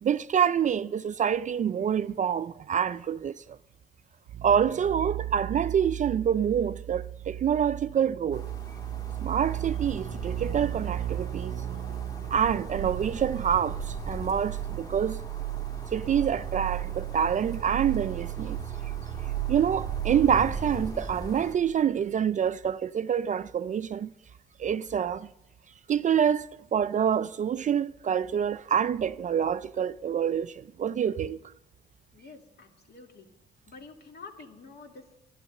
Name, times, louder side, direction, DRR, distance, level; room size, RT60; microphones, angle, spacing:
voice 1, 0.0-3.6 4.4-8.5 9.2-11.5 12.3-15.2 15.9-18.6 19.5-24.1 24.6-25.3 25.9-31.4, right 8 dB, 40° right, 0.4 m, -27 dB
sound 1, 4.3-21.8 22.1-22.2, right 14 dB, 85° right, 0.6 m, -35 dB
sound 2, 8.3-21.6, equal, 20° left, 1.5 m, -42 dB
voice 2, 32.1-33.3 33.7-35.2, left 4 dB, 55° left, 2.3 m, -48 dB
11.5 x 11.0 x 6.5 m
cardioid pair, 90°, 20 cm